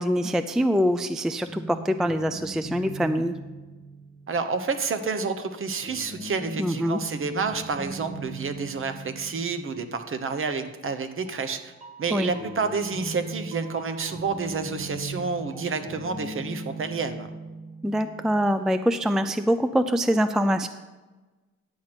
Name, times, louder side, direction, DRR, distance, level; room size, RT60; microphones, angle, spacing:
voice 1, 0.0-3.3 6.6-7.0 12.1-12.3 17.8-20.7, equal, ahead, 11 dB, 0.4 m, -24 dB
sound 1, 1.4-4.5 5.8-10.5 11.3-19.0, right 2 dB, 20° right, 2.4 m, -39 dB
voice 2, 4.3-11.7 12.0-17.3, right 4 dB, 45° right, 9 dB, 1.1 m, -29 dB
10.5 x 4.4 x 7.8 m, 1.2 s
cardioid pair, 90°, 30 cm